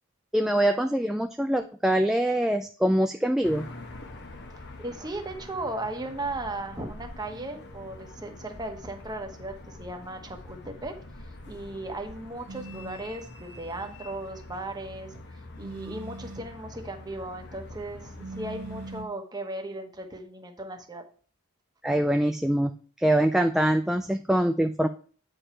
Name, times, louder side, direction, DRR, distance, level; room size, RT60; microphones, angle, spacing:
voice 1, 0.3-3.6 21.8-22.7 23.0-24.9, right 1 dB, ahead, 5 dB, 0.3 m, -24 dB
sound 1, 3.4-19.0, left 2 dB, 50° left, 1.1 m, -45 dB
voice 2, 4.8-11.0 11.5-15.2 15.6-21.0, right 2 dB, 20° right, 4 dB, 1.1 m, -36 dB
sound 2, 12.5-13.1 15.6-16.6 18.2-19.2, right 3 dB, 70° right, 0.5 m, -41 dB
8.8 x 5.1 x 4.3 m, 0.41 s
head